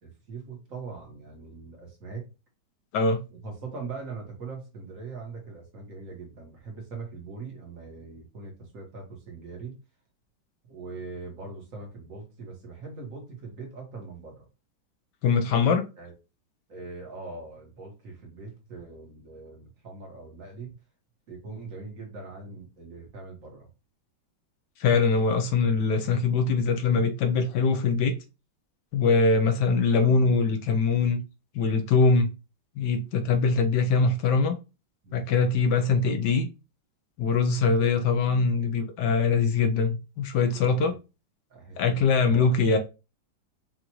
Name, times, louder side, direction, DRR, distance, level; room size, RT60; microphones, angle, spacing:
voice 1, 0.0-2.3 3.3-9.7 10.7-14.5 16.0-16.1 16.7-20.7 21.3-23.7 35.0-35.4 40.8-41.0 41.5-42.6, right 4 dB, 45° right, 1.6 m, -41 dB
voice 2, 15.2-15.8 24.8-28.1 28.9-31.2 31.5-32.3 32.8-34.6 35.1-36.5 37.2-40.9 41.8-42.8, left 4 dB, 70° left, 1.1 m, -23 dB
5.8 x 2.5 x 3.0 m
omnidirectional pair, 2.2 m